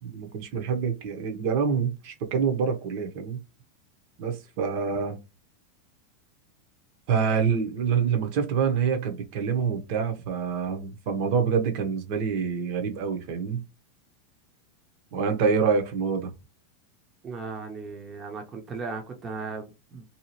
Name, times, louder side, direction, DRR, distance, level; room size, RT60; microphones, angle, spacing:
voice 1, 0.0-3.4 4.2-5.2 7.1-13.6 15.1-16.3, right 6 dB, 55° right, 0.8 m, -26 dB
voice 2, 17.2-20.0, right 4 dB, 25° right, 0.7 m, -36 dB
2.8 x 2.3 x 2.9 m
supercardioid pair, 135°, 0 cm